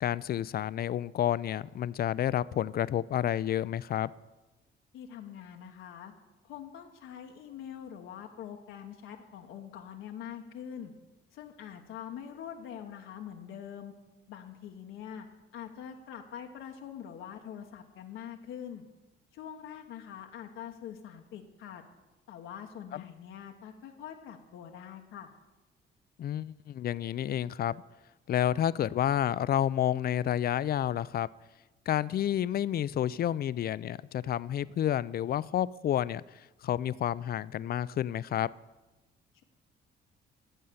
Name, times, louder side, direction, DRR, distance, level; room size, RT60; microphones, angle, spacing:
voice 1, 0.0-4.1 22.9-23.1 26.2-27.8 28.3-31.3 31.9-38.5, left 11 dB, 50° left, 19 dB, 0.4 m, -30 dB
voice 2, 4.9-6.1 6.4-10.9 11.3-13.9 14.3-15.3 15.5-18.8 19.3-21.8 22.3-25.3, left 9 dB, 85° left, 3 dB, 1.0 m, -44 dB
14.5 x 5.5 x 7.8 m, 1.1 s
cardioid pair, 90°, 20 cm